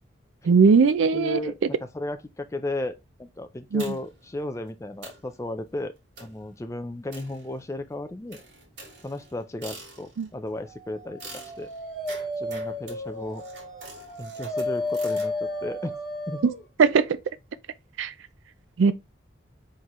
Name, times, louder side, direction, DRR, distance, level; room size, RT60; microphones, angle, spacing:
voice 1, 0.4-1.4 3.7-3.9 10.2-10.3 16.8-17.2 18.0-18.1 18.8-18.9, right 5 dB, 85° right, 0.4 m, -19 dB
voice 2, 1.1-5.9 6.2-8.4 9.0-11.7 12.4-13.4 14.2-15.3 15.6-16.0 16.3-16.5, left 1 dB, 15° left, 0.4 m, -34 dB
sound 1, 3.8-4.3 4.7-4.8 5.0-5.3 6.2-6.5 7.1-7.8 8.3-10.3 11.2-15.3, right 3 dB, 70° right, 2.2 m, -45 dB
Dog, 11.0-16.6, left 1 dB, 5° right, 2.0 m, -32 dB
4.4 x 3.7 x 3.0 m
head